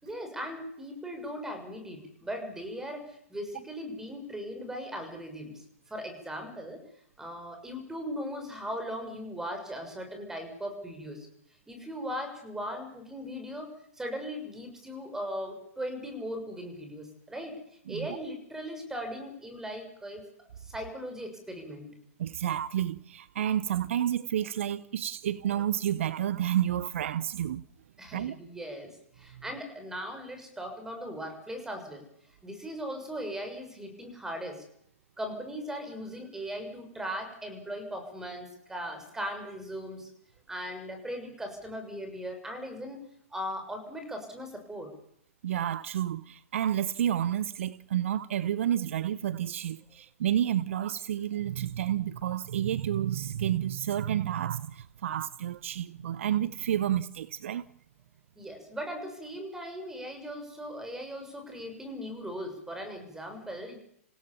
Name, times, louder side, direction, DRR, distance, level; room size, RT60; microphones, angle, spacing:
voice 1, 0.0-5.6 5.9-6.8 7.2-11.3 11.7-13.7 13.9-17.5 17.9-20.2 20.6-21.9 28.0-32.0 32.4-34.6 35.2-40.1 40.5-43.0 43.3-44.9 58.3-63.8, equal, 5° right, 6.7 m, -38 dB
voice 2, 22.2-27.6 28.1-28.4 45.4-57.6, right 11 dB, 60° right, 0.8 m, -30 dB
28.0 x 17.0 x 7.2 m
hypercardioid pair, 125°, 8 cm